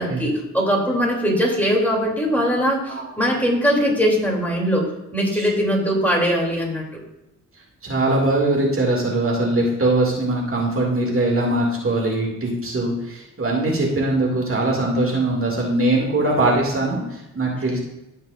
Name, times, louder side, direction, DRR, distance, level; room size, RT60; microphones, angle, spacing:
voice 1, 0.0-7.0, equal, 5° left, -3 dB, 2.9 m, -21 dB
voice 2, 7.8-17.8, right 2 dB, 45° right, -2 dB, 2.3 m, -21 dB
15.0 x 5.5 x 2.5 m, 0.92 s
cardioid pair, 75°, 31 cm